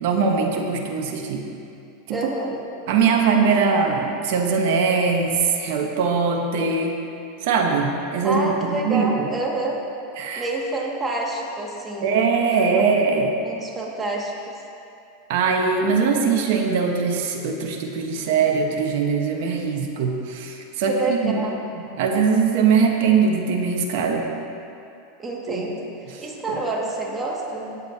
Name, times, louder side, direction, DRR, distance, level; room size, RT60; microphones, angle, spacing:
voice 1, 0.0-1.4 2.1-2.2 2.9-7.0 7.4-9.1 10.2-10.5 12.0-13.3 15.3-21.3 21.8-24.2 25.5-25.6 26.1-26.2 26.5-26.6, right 5 dB, 65° right, 2 dB, 1.2 m, -21 dB
voice 2, 2.1-2.6 8.2-9.8 10.4-12.3 12.8-12.9 13.2-14.6 20.9-21.6 25.2-27.8, right 2 dB, 20° right, -2 dB, 2.1 m, -28 dB
17.5 x 8.5 x 2.9 m, 2.6 s
hypercardioid pair, 105°, 0 cm